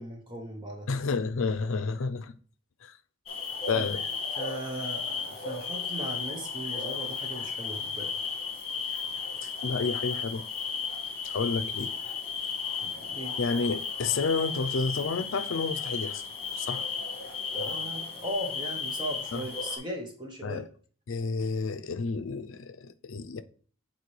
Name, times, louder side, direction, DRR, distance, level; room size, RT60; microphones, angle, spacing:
voice 1, 0.0-0.9 3.7-4.0 4.4-8.1 12.8-13.4 17.5-20.6, equal, 20° right, 0.9 m, -38 dB
voice 2, 0.9-2.3 2.8-3.0 3.7-4.0 9.4-10.4 11.2-11.9 13.4-16.9 19.3-19.4 20.4-20.7 21.1-23.4, left 4 dB, 70° left, 0.5 m, -30 dB
sound 1, 3.3-19.8, left 5 dB, 30° left, 1.5 m, -34 dB
8.3 x 4.2 x 3.2 m
head